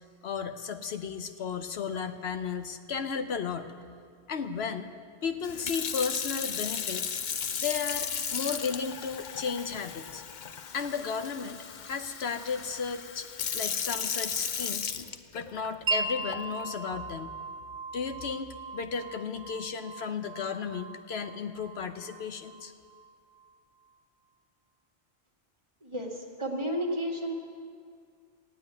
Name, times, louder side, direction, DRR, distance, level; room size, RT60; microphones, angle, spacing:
voice 1, 0.2-3.7 4.3-4.9 5.2-7.2 7.6-10.2 10.7-13.3 13.5-15.0 15.3-17.3 17.9-22.7, left 6 dB, 70° left, 8 dB, 1.0 m, -34 dB
Sink (filling or washing) / Fill (with liquid), 5.4-15.7 16.3-16.6, left 7 dB, 50° left, 0.7 m, -35 dB
Wind chime, 15.9-23.5, right 3 dB, 80° right, 1.2 m, -38 dB
voice 2, 25.8-27.3, equal, 25° right, -1 dB, 1.8 m, -32 dB
15.5 x 9.0 x 9.5 m, 2.2 s
omnidirectional pair, 1.1 m